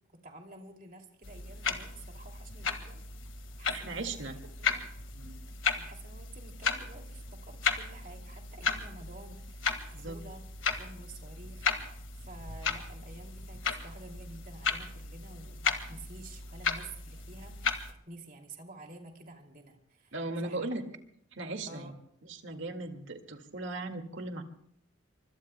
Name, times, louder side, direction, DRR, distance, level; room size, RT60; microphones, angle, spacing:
voice 1, 0.2-3.0 3.6-4.1 4.6-4.9 5.8-10.4 10.8-20.1 20.4-20.7 21.7-21.9, right 2 dB, 45° right, 3 dB, 2.6 m, -50 dB
sound 1, 1.2-17.9, left 5 dB, 75° left, 1.7 m, -35 dB
voice 2, 3.7-4.4 5.1-5.4 10.0-10.2 20.1-20.8 21.3-21.9 22.3-24.4, right 2 dB, 70° right, 5 dB, 2.0 m, -38 dB
26.0 x 24.0 x 2.2 m, 0.69 s
head